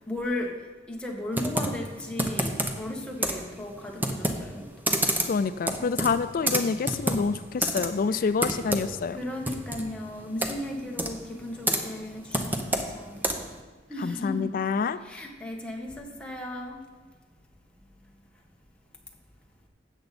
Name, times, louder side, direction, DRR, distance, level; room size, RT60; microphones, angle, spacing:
voice 1, 0.1-0.6 0.9-5.1 5.8-6.0 8.1-8.3 9.1-13.3 13.9-14.5 15.0-16.8, left 1 dB, 5° left, -1 dB, 1.4 m, -36 dB
Computer keyboard, 1.3-13.6, right 1 dB, 10° right, 0.8 m, -30 dB
voice 2, 5.3-9.2 14.0-15.0, left 5 dB, 50° left, 13 dB, 0.3 m, -27 dB
13.5 x 7.9 x 4.2 m, 1.3 s
head